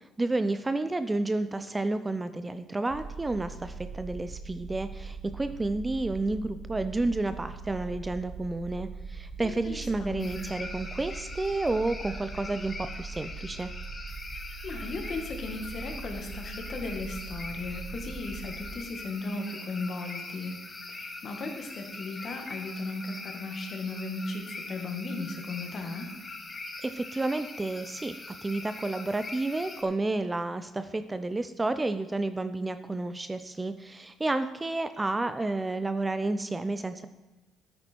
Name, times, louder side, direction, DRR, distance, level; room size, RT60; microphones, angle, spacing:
voice 1, 0.2-13.7 26.8-37.1, right 2 dB, 15° right, 11 dB, 0.4 m, -31 dB
sound 1, 2.9-18.7, right 4 dB, 45° right, 0.9 m, -41 dB
voice 2, 9.4-10.5 14.6-20.5 20.9-26.1, left 3 dB, 45° left, 4 dB, 1.9 m, -36 dB
sound 2, 10.2-29.8, left 3 dB, 25° left, 1.3 m, -42 dB
9.7 x 8.8 x 4.5 m, 1.2 s
cardioid pair, 110°, 0 cm